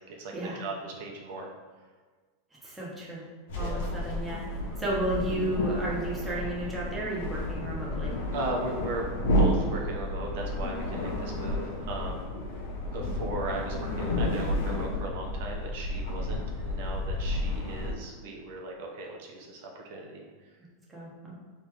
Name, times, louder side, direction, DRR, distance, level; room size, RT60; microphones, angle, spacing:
voice 1, 0.0-1.5 3.6-3.9 8.3-9.0 9.4-12.4 12.9-20.6, right 2 dB, 65° right, -1 dB, 0.8 m, -37 dB
voice 2, 2.6-3.2 3.5-4.4 4.8-8.1 20.9-21.3, right 1 dB, 10° right, -6 dB, 1.1 m, -33 dB
sound 1, 3.5-17.9, left 1 dB, 80° left, 1.0 m, -31 dB
4.1 x 3.3 x 3.6 m, 1.4 s
supercardioid pair, 140°, 0 cm